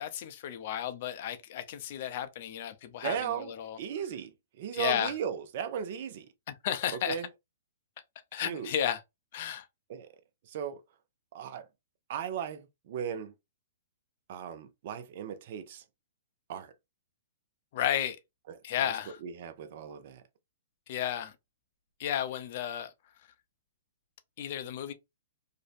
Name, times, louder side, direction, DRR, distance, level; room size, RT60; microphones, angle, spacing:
voice 1, 0.0-3.8 4.7-5.1 6.5-7.2 8.3-9.0 9.3-9.6 17.7-18.2 18.6-19.2 20.9-21.3 22.0-22.9 24.4-24.9, left 10 dB, 50° left, 0.5 m, -33 dB
voice 2, 3.0-3.5 3.8-6.3 7.1-7.3 8.4-8.7 9.9-10.1 10.5-10.8 11.3-11.6 12.1-13.3 14.3-15.8 16.5-16.7 18.5-18.9 19.2-20.2, right 8 dB, 55° right, 0.5 m, -37 dB
2.5 x 2.1 x 2.4 m
hypercardioid pair, 125°, 0 cm